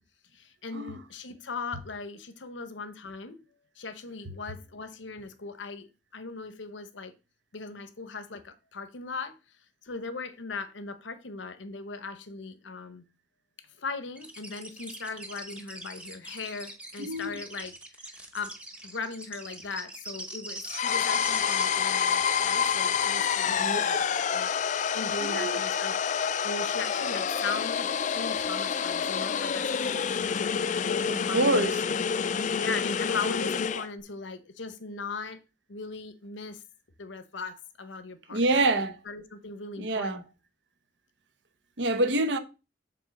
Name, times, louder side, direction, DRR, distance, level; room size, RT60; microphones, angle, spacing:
voice 1, 0.3-3.4 3.8-7.1 7.5-9.4 9.8-13.0 13.8-17.7 18.0-18.6 18.8-30.6 30.9-31.8 32.5-35.4 35.7-36.6 37.0-38.7 39.1-40.2, left 4 dB, 85° left, 0.9 m, -39 dB
sound 1, 14.2-21.6, right 1 dB, 5° right, 1.0 m, -42 dB
voice 2, 17.0-17.4 23.2-24.0 25.2-25.6 31.1-31.8 38.3-39.0 39.8-40.2 41.8-42.4, right 2 dB, 70° right, 0.9 m, -27 dB
sound 2, 20.7-33.9, left 7 dB, 40° left, 0.4 m, -28 dB
7.0 x 3.8 x 6.3 m
head